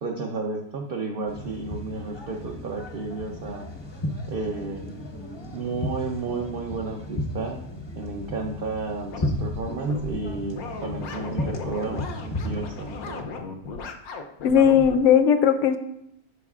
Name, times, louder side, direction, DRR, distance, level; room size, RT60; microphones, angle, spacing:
voice 1, 0.0-3.7 4.3-4.8 5.5-7.6 8.0-13.2, right 3 dB, 50° right, 0 dB, 0.8 m, -32 dB
sound 1, 1.3-13.2, left 1 dB, 25° left, 0.6 m, -35 dB
sound 2, 9.1-15.0, left 4 dB, 80° left, 1.2 m, -36 dB
voice 2, 14.4-15.8, left 8 dB, 65° left, 9 dB, 0.9 m, -18 dB
11.5 x 5.2 x 2.4 m, 0.78 s
omnidirectional pair, 1.6 m